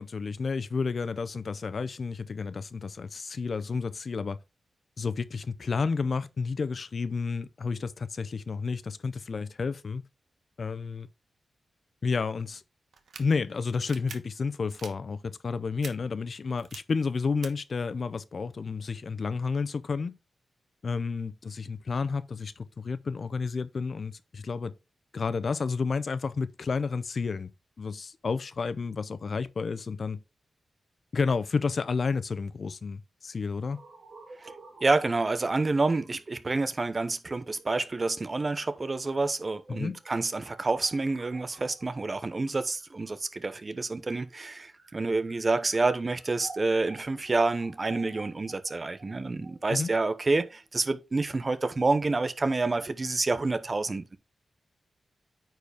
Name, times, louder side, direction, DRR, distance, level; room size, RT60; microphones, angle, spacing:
voice 1, 0.0-4.4 5.0-10.0 10.6-11.1 12.0-12.6 13.2-20.2 20.8-24.7 25.1-27.5 27.8-30.2 31.1-33.8 39.7-40.0 49.7-49.9, left 4 dB, 55° left, 0.5 m, -31 dB
sound 1, 12.9-13.2 13.8-14.2 14.7-14.9 15.8-15.9 16.6-16.8 17.4-17.5, right 5 dB, 80° right, 1.2 m, -43 dB
sound 2, 33.7-43.6 44.3-51.3, right 3 dB, 55° right, 2.4 m, -52 dB
voice 2, 34.8-54.2, right 3 dB, 35° right, 0.8 m, -28 dB
9.3 x 4.7 x 3.4 m
wide cardioid pair, 100°, 0 cm